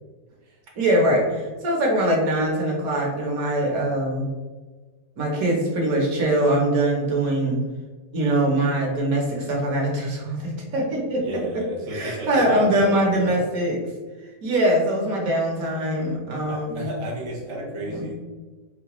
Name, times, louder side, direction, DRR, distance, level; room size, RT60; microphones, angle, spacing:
voice 1, 0.8-4.3 5.2-7.6 8.1-11.2 11.5-11.6 11.9-13.8 14.4-16.9 17.9-18.1, right 1 dB, 60° right, -1 dB, 1.2 m, -22 dB
voice 2, 11.2-13.4 16.5-18.1, right 1 dB, 45° right, -4 dB, 0.4 m, -32 dB
4.7 x 2.1 x 2.9 m, 1.3 s
omnidirectional pair, 1.9 m